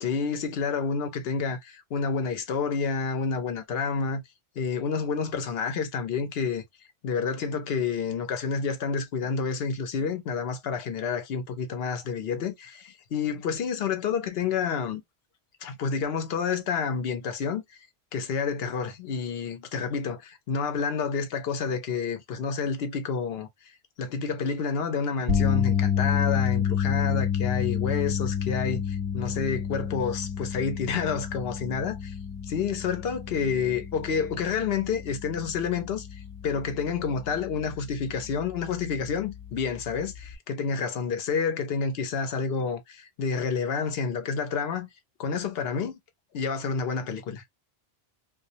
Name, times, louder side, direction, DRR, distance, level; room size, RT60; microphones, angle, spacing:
voice 1, 0.0-4.2 4.6-6.6 7.0-15.0 15.6-17.6 18.1-23.5 24.0-32.1 32.5-36.1 36.4-44.9 45.2-46.0 46.3-47.4, left 5 dB, 75° left, 0.9 m, -29 dB
sound 1, 25.3-37.5 37.9-38.1 40.3-40.4, left 8 dB, 25° right, 0.9 m, -29 dB
2.2 x 2.2 x 2.6 m
omnidirectional pair, 1.0 m